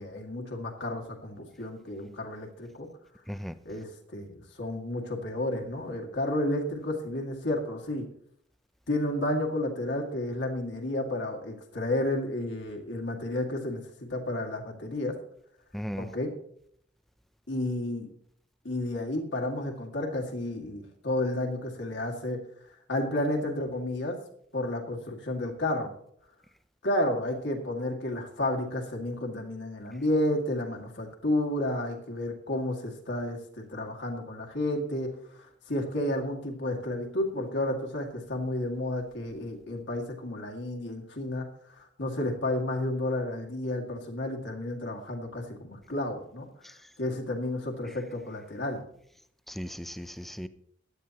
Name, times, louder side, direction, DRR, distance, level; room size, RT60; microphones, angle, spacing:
voice 1, 0.0-2.9 3.7-8.1 8.9-15.1 16.0-16.3 17.5-18.1 18.6-22.4 22.9-24.2 24.5-25.9 26.8-41.5 41.8-46.5 47.0-48.8, left 1 dB, 65° left, 2.1 m, -31 dB
voice 2, 15.7-16.1 49.5-50.5, equal, ahead, 0.5 m, -36 dB
16.0 x 11.5 x 2.9 m
head